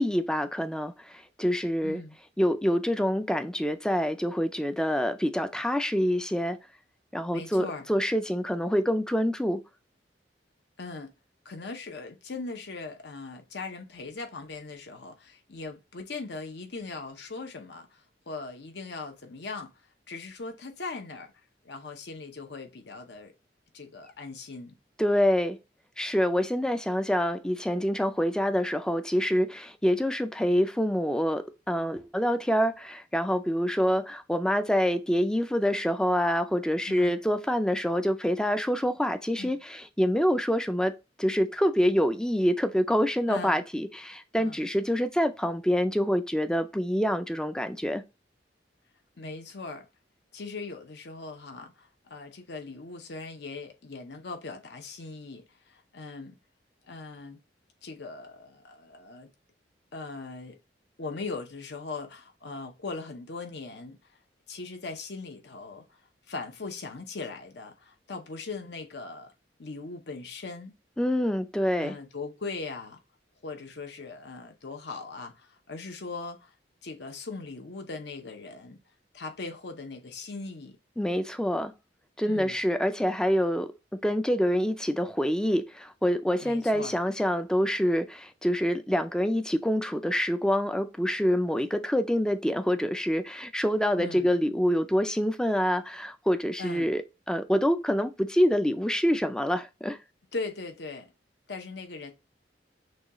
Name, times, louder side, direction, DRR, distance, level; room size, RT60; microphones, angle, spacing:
voice 1, 0.0-2.0 2.4-6.6 7.1-9.6 25.0-25.6 26.0-48.0 71.0-72.0 81.0-81.7 82.2-83.7 84.0-97.0 97.3-100.0, equal, 5° left, 0.3 m, -26 dB
voice 2, 1.8-2.2 7.3-7.9 10.8-11.1 11.4-19.7 20.1-21.3 21.6-23.3 23.7-24.7 36.8-37.2 39.4-39.6 43.3-43.7 44.4-44.7 49.2-49.9 50.3-56.4 56.9-57.4 57.8-59.3 59.9-60.6 61.0-64.0 64.5-66.0 66.3-69.3 69.6-70.7 71.7-73.0 73.4-76.5 76.8-78.8 79.1-80.8 82.3-82.6 86.4-87.0 94.0-94.3 96.6-96.9 100.3-101.1 101.5-102.1, left 3 dB, 65° left, 0.8 m, -39 dB
6.2 x 2.3 x 3.0 m
head